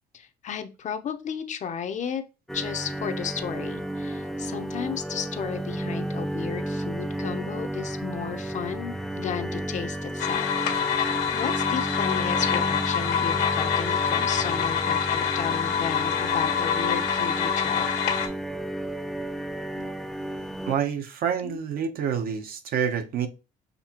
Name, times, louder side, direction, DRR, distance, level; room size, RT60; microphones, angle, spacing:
voice 1, 0.1-2.2 2.5-10.5 11.0-17.9 19.7-20.1 21.4-21.6, left 7 dB, 45° left, 0.6 m, -34 dB
sound 1, 2.5-20.7, right 1 dB, ahead, 0.4 m, -32 dB
sound 2, 10.2-18.3, left 8 dB, 80° left, 1.2 m, -26 dB
voice 2, 20.7-23.3, right 7 dB, 60° right, 0.8 m, -27 dB
6.5 x 2.8 x 2.9 m
cardioid pair, 110°, 17 cm